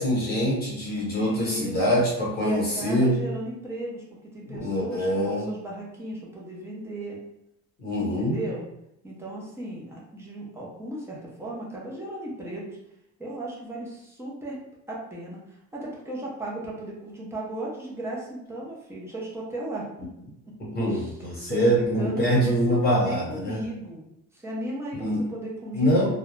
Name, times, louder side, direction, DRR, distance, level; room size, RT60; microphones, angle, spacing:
voice 1, 0.0-3.2 4.5-5.5 7.8-8.4 20.7-23.6 25.0-25.2 25.7-26.1, equal, 30° left, -5 dB, 0.8 m, -24 dB
voice 2, 1.1-2.0 2.4-4.0 4.3-7.2 8.0-8.6 9.0-12.8 13.2-14.6 14.9-15.4 15.7-20.1 20.9-21.1 21.5-22.5 22.8-24.0 24.3-26.1, right 1 dB, 10° right, -5 dB, 0.4 m, -36 dB
2.3 x 2.0 x 3.0 m, 0.82 s
cardioid pair, 160°, 33 cm